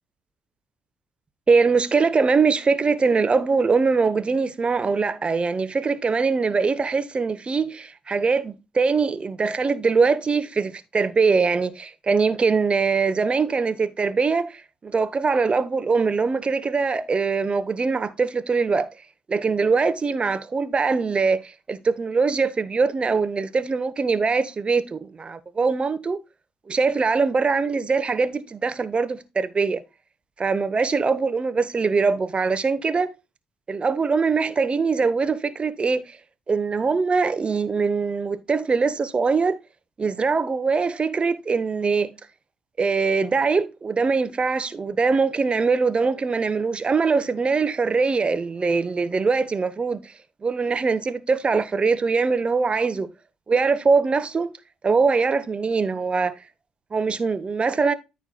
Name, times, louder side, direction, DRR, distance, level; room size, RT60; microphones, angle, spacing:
voice 1, 1.5-18.9 19.3-26.2 26.7-29.8 30.4-33.1 33.7-36.2 36.5-39.6 40.0-42.1 42.8-50.1 50.4-53.1 53.5-54.5 54.8-56.4 56.9-57.9, right 4 dB, 30° right, 0.9 m, -22 dB
13.5 x 4.6 x 2.2 m
figure-of-eight pair, 45°, 3 cm